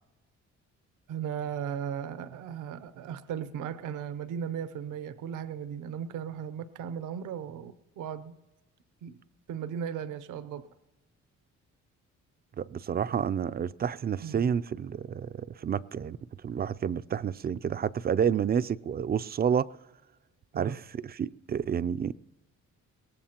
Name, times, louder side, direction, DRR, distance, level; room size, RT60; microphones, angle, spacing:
voice 1, 1.1-8.3 9.0-9.2 9.5-10.7 14.2-14.5 20.5-20.8, right 8 dB, 85° right, 0.8 m, -36 dB
voice 2, 12.6-16.2 16.4-19.7 20.5-22.1, right 8 dB, 30° right, 0.4 m, -29 dB
22.0 x 17.5 x 2.9 m
cardioid pair, 90°, 30 cm